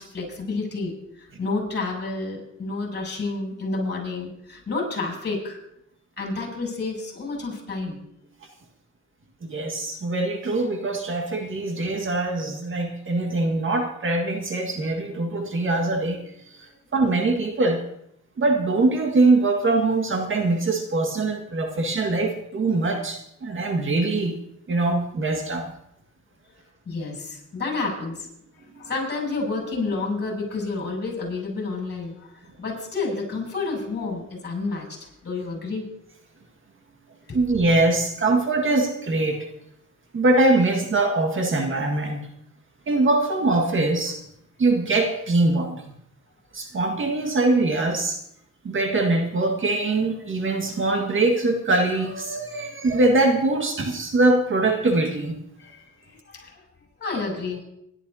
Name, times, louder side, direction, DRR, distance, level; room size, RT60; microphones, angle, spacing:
voice 1, 0.0-5.6 6.2-8.0 26.9-28.3 28.8-32.3 32.6-35.0 35.2-35.9 37.3-37.4 55.6-56.5 57.0-57.6, left 3 dB, 35° left, -1 dB, 7.4 m, -30 dB
voice 2, 9.4-16.2 16.6-17.8 18.4-24.4 24.7-25.7 28.8-28.9 37.3-39.4 40.1-42.2 42.9-44.2 44.6-45.8 46.5-48.2 48.6-55.4, right 2 dB, 40° right, 4 dB, 1.8 m, -22 dB
25.0 x 12.0 x 2.8 m, 0.76 s
cardioid pair, 90°, 30 cm